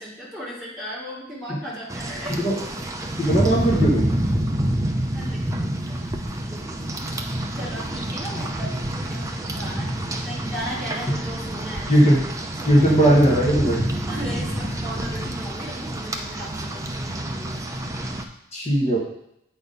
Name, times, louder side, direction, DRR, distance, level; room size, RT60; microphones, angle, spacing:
voice 1, 0.0-2.4 3.2-3.4 4.9-6.0 6.5-6.9 7.6-12.1 12.6-13.0 14.1-17.7, equal, ahead, -10 dB, 3.3 m, -37 dB
Rain, 1.9-18.2, right 1 dB, 15° right, 0.5 m, -28 dB
voice 2, 3.2-4.1 11.9-12.2 12.6-13.9 18.5-19.0, right 1 dB, 30° left, -4 dB, 1.4 m, -18 dB
8.2 x 4.2 x 5.2 m, 0.78 s
head